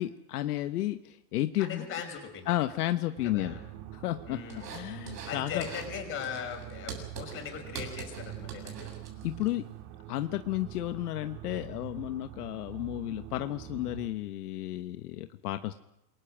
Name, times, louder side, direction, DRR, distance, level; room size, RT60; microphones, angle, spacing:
voice 1, 0.0-1.8 2.5-3.6 3.9-4.4 4.7-5.7 9.2-9.6 10.1-15.7, left 14 dB, 70° left, 8 dB, 1.2 m, -32 dB
voice 2, 1.6-2.6 3.2-3.6 4.3-4.7 5.3-8.9, left 7 dB, 25° left, 5 dB, 5.4 m, -39 dB
sound 1, 3.2-14.1, right 13 dB, 50° right, 2.3 m, -45 dB
sound 2, 4.5-5.3 5.6-5.9 6.2-9.5, right 6 dB, 90° right, 7.6 m, -43 dB
27.5 x 22.5 x 6.2 m, 0.83 s
supercardioid pair, 160°, 47 cm